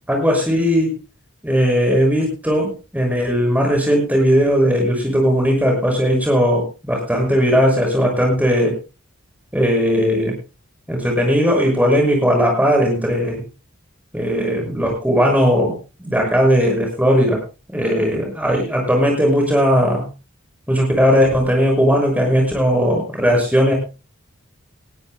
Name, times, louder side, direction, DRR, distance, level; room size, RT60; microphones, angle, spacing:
voice 1, 0.1-1.0 1.4-8.8 9.5-10.3 10.9-13.4 14.1-17.4 17.7-20.0 20.7-23.7, equal, 5° right, 1 dB, 6.3 m, -17 dB
20.0 x 15.5 x 2.2 m, 0.30 s
head